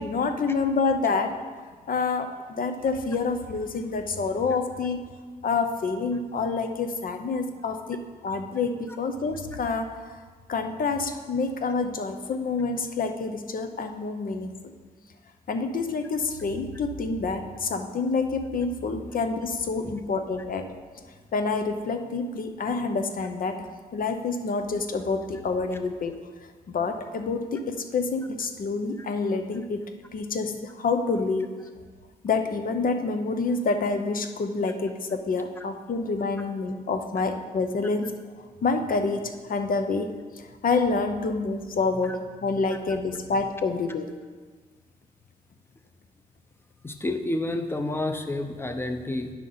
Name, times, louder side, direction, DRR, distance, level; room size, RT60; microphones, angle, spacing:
voice 1, 0.0-1.3 1.9-5.0 5.4-10.2 10.5-14.6 15.5-20.7 21.3-26.1 26.7-31.5 32.2-38.1 38.6-39.2 39.5-44.1, left 4 dB, 60° left, 6 dB, 0.7 m, -27 dB
voice 2, 46.8-49.3, left 2 dB, 15° left, 6 dB, 0.7 m, -29 dB
9.6 x 5.9 x 3.9 m, 1.5 s
cardioid pair, 100°, 16 cm